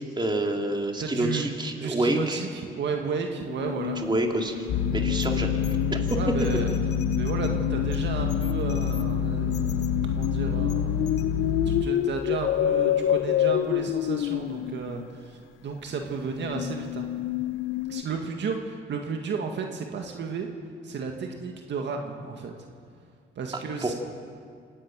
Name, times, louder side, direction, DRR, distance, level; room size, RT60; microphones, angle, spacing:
voice 1, 0.2-2.4 4.0-5.6 5.9-6.2 23.8-23.9, right 1 dB, 20° right, 2 dB, 2.8 m, -27 dB
voice 2, 1.0-1.5 1.8-2.5 2.8-4.0 6.2-6.7 7.2-10.9 11.7-17.1 17.9-20.5 20.8-22.5 23.4-23.9, right 5 dB, 65° right, 3 dB, 2.0 m, -33 dB
sound 1, 3.4-15.1 16.0-18.0, left 12 dB, 85° left, 0.7 m, -29 dB
sound 2, 4.7-11.8, left 6 dB, 60° left, 1.2 m, -27 dB
27.0 x 11.0 x 9.2 m, 2.2 s
cardioid pair, 90°, 20 cm